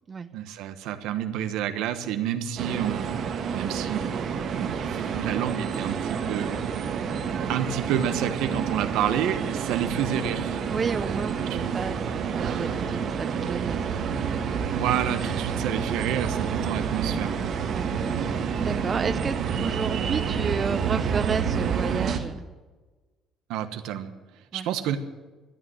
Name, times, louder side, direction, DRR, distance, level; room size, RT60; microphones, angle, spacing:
voice 1, 0.3-4.2 4.6-6.6 7.5-10.6 11.1-11.2 11.6-11.7 14.7-17.4 23.5-24.1 24.5-25.0, right 10 dB, 85° right, 9 dB, 1.2 m, -29 dB
sound 1, 2.6-22.2, right 6 dB, 55° right, 1.5 m, -28 dB
voice 2, 10.7-14.1 14.5-14.6 17.7-18.3 18.6-22.5 24.5-24.7, right 5 dB, 35° right, 10 dB, 0.6 m, -32 dB
13.0 x 8.8 x 9.3 m, 1.3 s
cardioid pair, 110°, 0 cm